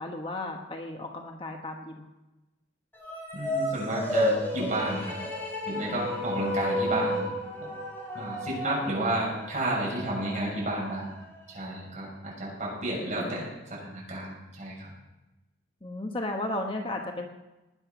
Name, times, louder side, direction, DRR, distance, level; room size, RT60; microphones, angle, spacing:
voice 1, 0.0-2.1 13.2-13.4 15.8-17.3, left 2 dB, 30° left, 2 dB, 1.2 m, -34 dB
sound 1, 2.9-11.4, left 1 dB, 10° left, 4.6 m, -32 dB
voice 2, 3.3-5.2 5.7-7.3 7.6-7.7 8.1-11.1 11.5-14.9, right 1 dB, 40° right, -4 dB, 6.9 m, -31 dB
19.5 x 7.8 x 6.1 m, 0.99 s
head